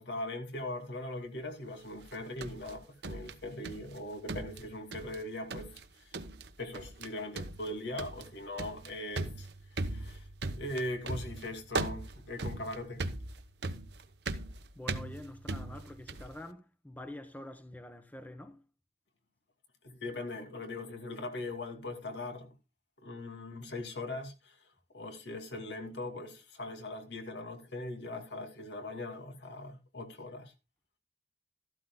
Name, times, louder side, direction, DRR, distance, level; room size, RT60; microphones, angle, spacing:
voice 1, 0.0-5.7 6.0-6.1 6.6-10.3 10.6-13.0 19.8-22.5 23.0-24.7 24.9-30.5, left 2 dB, 85° left, 2.5 m, -40 dB
sound 1, 2.0-4.0 4.3-5.2 5.5-5.9 6.1-6.5 6.7-7.1 7.4-16.4, right 2 dB, 75° right, 0.9 m, -39 dB
voice 2, 14.7-18.6, left 1 dB, 10° left, 0.9 m, -46 dB
13.5 x 12.0 x 2.2 m
head